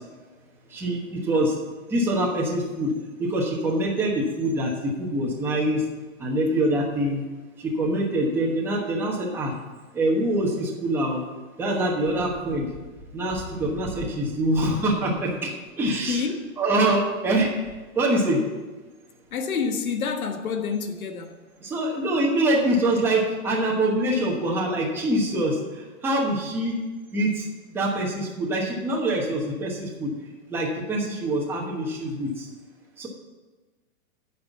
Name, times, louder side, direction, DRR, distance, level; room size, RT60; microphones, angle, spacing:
voice 1, 0.7-1.5 1.9-2.9 3.2-5.8 6.2-7.2 7.8-9.5 9.9-11.2 11.6-12.7 13.1-15.5 15.8-16.2 16.6-17.5 18.0-18.4 21.6-25.6 26.0-26.8 27.1-27.4 27.7-30.1 30.5-32.3 33.0-33.1, right 1 dB, 5° right, -3 dB, 1.1 m, -24 dB
voice 2, 15.8-16.4 19.3-21.4, left 5 dB, 90° left, 6 dB, 1.4 m, -28 dB
9.5 x 5.9 x 8.0 m, 1.3 s
hypercardioid pair, 160°, 41 cm